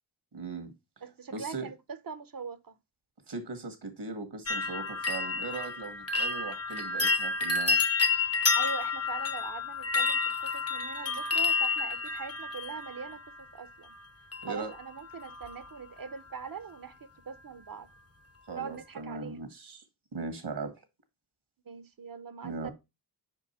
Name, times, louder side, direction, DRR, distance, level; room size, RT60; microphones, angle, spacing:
voice 1, 0.3-0.7 1.3-1.7 3.3-7.8 14.4-14.7 18.5-19.8 20.1-20.7 22.4-22.7, right 4 dB, 85° right, 1.5 m, -39 dB
voice 2, 1.0-2.8 8.6-13.9 14.5-17.9 18.5-19.4 21.7-22.7, right 6 dB, 55° right, 0.7 m, -42 dB
sound 1, 4.5-13.4 14.3-14.8 15.1-15.7 16.0-16.1, left 4 dB, 35° left, 0.9 m, -30 dB
5.1 x 4.6 x 4.2 m
cardioid pair, 40°, 40 cm